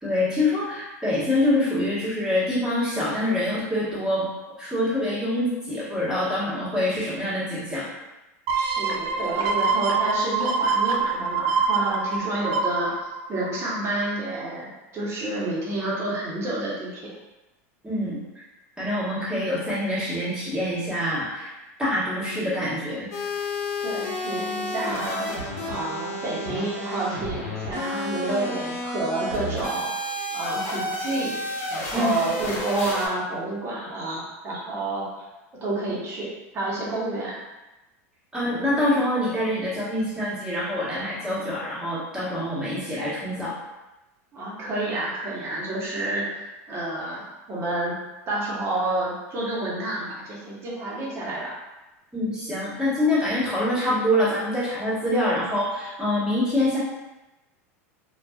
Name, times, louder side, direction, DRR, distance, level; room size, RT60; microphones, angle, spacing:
voice 1, 0.0-4.3 4.6-7.9 17.8-18.2 18.8-23.1 31.9-32.1 38.3-43.6 52.1-56.8, left 1 dB, 10° right, -10 dB, 1.2 m, -25 dB
sound 1, 8.5-14.0 14.4-14.5, right 4 dB, 65° right, 0.3 m, -25 dB
voice 2, 8.6-12.9 13.3-14.7 14.9-17.1 23.8-25.3 25.7-29.9 30.3-31.3 31.7-35.2 35.6-37.3 44.3-47.9 48.3-51.6, right 2 dB, 35° right, -5 dB, 0.9 m, -29 dB
sound 2, 23.1-33.1, left 1 dB, 75° left, 0.8 m, -31 dB
2.5 x 2.3 x 2.3 m, 1.0 s
supercardioid pair, 115°, 8 cm